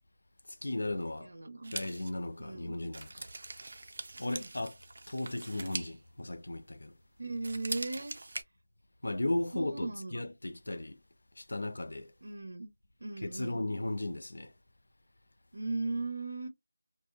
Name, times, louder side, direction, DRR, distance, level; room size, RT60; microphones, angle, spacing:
voice 1, 0.6-1.3 1.7-3.2 4.2-4.8 5.1-6.9 9.0-11.0 11.4-12.1 13.2-14.5, left 1 dB, 70° left, 0.5 m, -36 dB
voice 2, 1.2-1.7 2.4-2.7 4.4-4.5 7.2-8.1 9.5-10.2 12.2-12.7 13.0-13.6 15.5-16.5, right 3 dB, 85° right, 0.6 m, -37 dB
sound 1, 1.6-7.0 7.3-8.4, right 2 dB, 50° right, 0.4 m, -43 dB
2.6 x 2.0 x 2.4 m
figure-of-eight pair, 175°, 0 cm